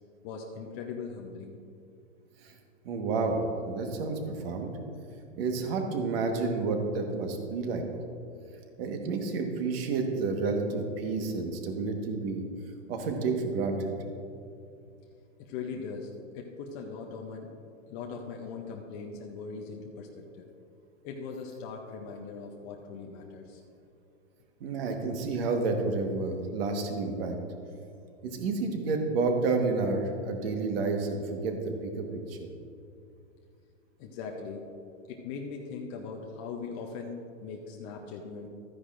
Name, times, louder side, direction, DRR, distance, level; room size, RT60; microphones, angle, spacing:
voice 1, 0.2-1.6 15.4-17.5 17.9-20.5 21.0-23.6 34.0-34.7 35.1-38.5, left 5 dB, 20° left, 0 dB, 0.5 m, -40 dB
voice 2, 2.8-4.7 5.3-7.8 8.8-12.5 12.9-13.9 24.6-27.3 28.2-32.5, right 3 dB, 50° right, 4 dB, 1.4 m, -30 dB
13.5 x 9.8 x 2.5 m, 2.5 s
hypercardioid pair, 140°, 39 cm